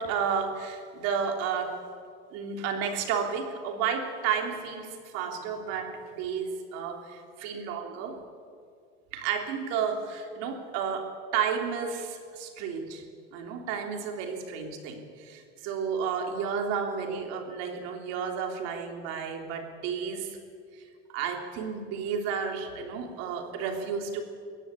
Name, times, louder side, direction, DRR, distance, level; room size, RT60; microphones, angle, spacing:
voice 1, 0.0-1.8 2.3-8.2 9.1-13.0 13.3-20.4 20.7-20.8 21.1-24.2, right 6 dB, 55° right, 4 dB, 3.2 m, -32 dB
22.0 x 16.5 x 8.5 m, 2.2 s
cardioid pair, 160°, 31 cm